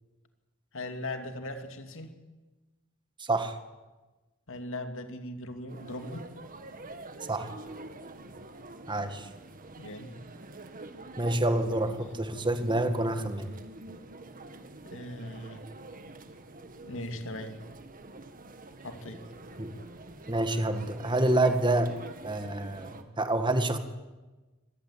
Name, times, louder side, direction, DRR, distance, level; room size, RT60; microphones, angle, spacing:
voice 1, 0.7-2.1 4.5-6.3 9.8-10.2 11.8-11.9 14.8-15.7 16.8-17.6 18.8-19.2, left 1 dB, 65° left, 7 dB, 2.7 m, -39 dB
voice 2, 3.2-3.5 7.3-7.5 8.9-9.3 11.2-13.5 19.6-19.7 20.3-21.9 22.2-23.8, right 2 dB, 20° right, 8 dB, 2.0 m, -27 dB
sound 1, 5.7-23.0, right 2 dB, 40° right, 1.8 m, -46 dB
25.0 x 19.0 x 8.7 m, 1.2 s
head